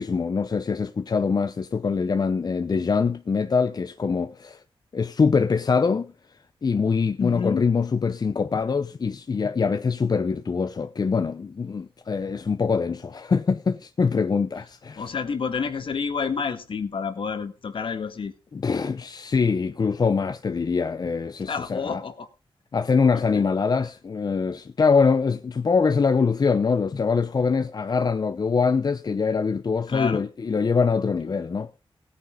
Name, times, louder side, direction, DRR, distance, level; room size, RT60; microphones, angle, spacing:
voice 1, 0.0-4.6 4.9-6.1 6.6-15.1 18.5-22.0 22.7-31.7, left 5 dB, 45° left, 0.7 m, -23 dB
voice 2, 7.2-7.7 15.0-18.3 21.5-22.3 23.1-23.4 29.9-30.2, left 5 dB, 60° left, 1.7 m, -29 dB
17.0 x 9.5 x 3.7 m
cardioid pair, 80°, 10 cm